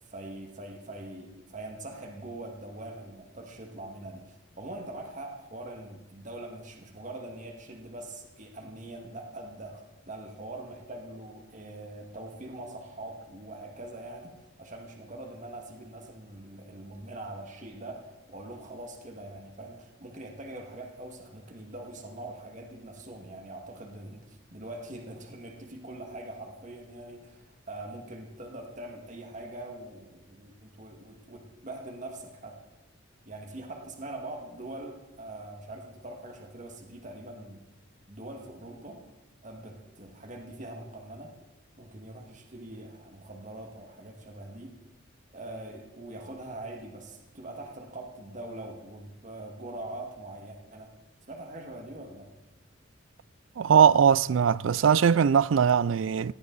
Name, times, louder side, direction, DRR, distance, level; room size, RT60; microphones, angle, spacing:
voice 1, 0.1-14.3 14.6-32.5 33.3-37.6 38.1-39.0 39.4-41.3 41.8-44.8 45.3-50.9 51.3-52.3, right 1 dB, 40° right, 2.1 m, -43 dB
voice 2, 53.6-56.3, right 7 dB, 85° right, 0.4 m, -21 dB
18.0 x 15.0 x 4.1 m
head